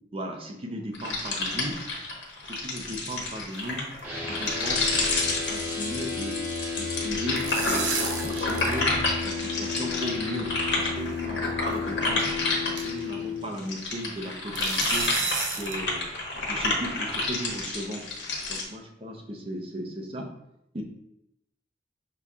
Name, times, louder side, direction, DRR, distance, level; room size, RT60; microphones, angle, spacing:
voice 1, 0.1-1.8 2.4-3.9 4.3-4.9 5.5-6.4 6.8-7.9 8.2-9.0 9.2-12.4 12.7-15.1 15.5-16.1 16.5-18.1 18.5-20.3 20.7-20.8, equal, 30° right, 1 dB, 0.6 m, -36 dB
sound 1, 0.9-13.2 13.5-18.6, left 2 dB, 80° left, 1.1 m, -30 dB
sound 2, 2.5-3.3 3.5-3.7 4.0-4.1 4.5-4.7 4.9-5.8 6.0-6.3 7.1-8.8 9.1-9.2 10.1-10.2 11.0-11.2 11.7-11.8 12.2-12.3 12.8-13.1 14.6-15.8, right 5 dB, 90° right, 0.6 m, -32 dB
sound 3, 4.0-13.4, left 4 dB, 10° right, 1.1 m, -33 dB
5.8 x 2.4 x 3.5 m, 0.81 s
head